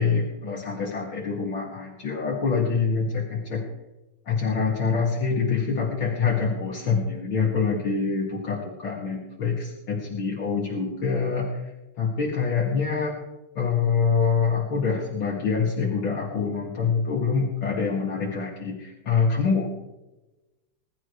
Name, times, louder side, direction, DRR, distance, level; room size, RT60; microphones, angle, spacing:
voice 1, 0.0-3.6 4.3-11.7 12.0-13.2 13.6-19.7, left 5 dB, 65° left, -3 dB, 2.9 m, -25 dB
21.5 x 12.5 x 3.3 m, 1.0 s
omnidirectional pair, 2.4 m